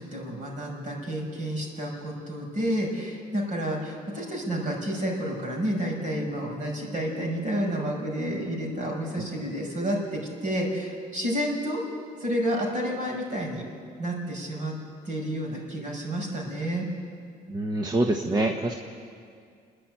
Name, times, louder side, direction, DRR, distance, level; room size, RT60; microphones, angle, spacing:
voice 1, 0.0-11.8 12.2-13.6 14.0-14.8 15.0-16.9, equal, 45° right, 0 dB, 6.2 m, -30 dB
voice 2, 17.5-18.7, right 2 dB, 25° right, 3 dB, 1.2 m, -25 dB
29.5 x 10.5 x 9.2 m, 2.2 s
cardioid pair, 110°, 17 cm